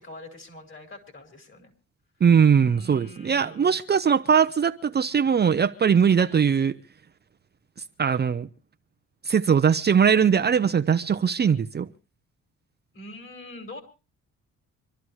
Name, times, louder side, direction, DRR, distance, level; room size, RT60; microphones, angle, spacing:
voice 1, 0.0-1.7 2.6-3.7 6.1-6.4 12.9-13.8, left 1 dB, 40° left, 5.1 m, -43 dB
voice 2, 2.2-6.7 8.0-8.5 9.2-11.9, right 7 dB, 35° right, 0.7 m, -20 dB
25.5 x 12.5 x 3.2 m
cardioid pair, 90°, 30 cm